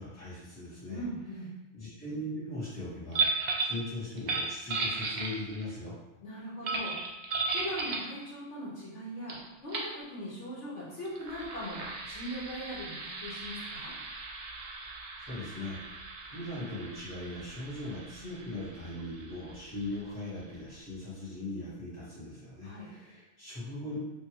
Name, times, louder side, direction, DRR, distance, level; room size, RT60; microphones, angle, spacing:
voice 1, 0.0-1.0 1.7-5.9 15.3-16.0 16.3-24.0, left 1 dB, 15° left, -11 dB, 1.3 m, -39 dB
voice 2, 0.9-1.5 6.2-6.9 7.5-13.9 22.6-22.9, equal, 70° left, -7 dB, 1.2 m, -40 dB
sound 1, 3.1-3.8 4.2-5.7 6.6-8.1 9.3-9.4 9.7-9.9 11.0-20.3, right 3 dB, 70° right, 0.4 m, -36 dB
2.6 x 2.6 x 2.9 m, 0.98 s
omnidirectional pair, 1.3 m